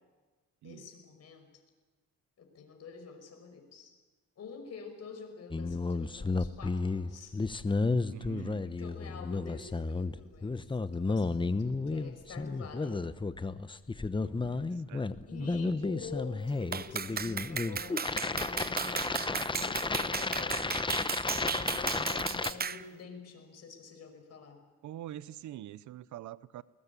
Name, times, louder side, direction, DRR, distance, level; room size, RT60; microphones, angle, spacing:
voice 1, 0.6-1.5 2.4-3.9 4.4-7.6 8.4-10.6 10.9-13.0 15.3-20.7 21.3-24.6, left 5 dB, 55° left, 5 dB, 5.6 m, -48 dB
sound 1, 5.5-22.5, left 3 dB, 15° left, 0.9 m, -32 dB
voice 2, 8.1-8.7 14.2-15.0 15.4-16.2 24.8-26.6, right 13 dB, 75° right, 18 dB, 0.8 m, -46 dB
Clapping, 16.7-22.8, right 6 dB, 30° right, 0.8 m, -35 dB
21.0 x 19.5 x 8.4 m, 1.3 s
cardioid pair, 90°, 30 cm